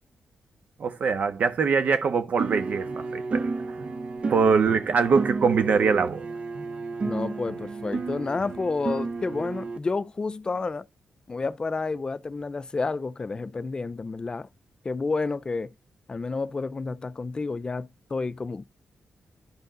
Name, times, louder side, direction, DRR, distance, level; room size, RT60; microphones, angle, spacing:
voice 1, 0.8-3.5 4.3-6.3, right 5 dB, 60° right, 1.5 m, -23 dB
sound 1, 2.4-9.8, right 3 dB, 45° right, 1.0 m, -32 dB
voice 2, 7.0-10.8 11.3-14.5 14.8-15.7 16.1-18.6, left 3 dB, 30° left, 0.6 m, -30 dB
11.0 x 5.4 x 3.9 m
wide cardioid pair, 115°, 3 cm